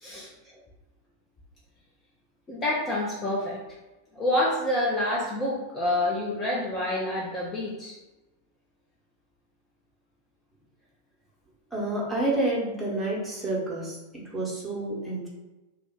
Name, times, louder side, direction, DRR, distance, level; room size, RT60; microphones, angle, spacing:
voice 1, 2.5-3.6 4.1-8.0, left 1 dB, 20° left, -6 dB, 0.6 m, -27 dB
voice 2, 11.7-15.3, right 2 dB, 5° right, -6 dB, 1.1 m, -29 dB
2.4 x 2.3 x 3.8 m, 1.1 s
figure-of-eight pair, 90°, 0 cm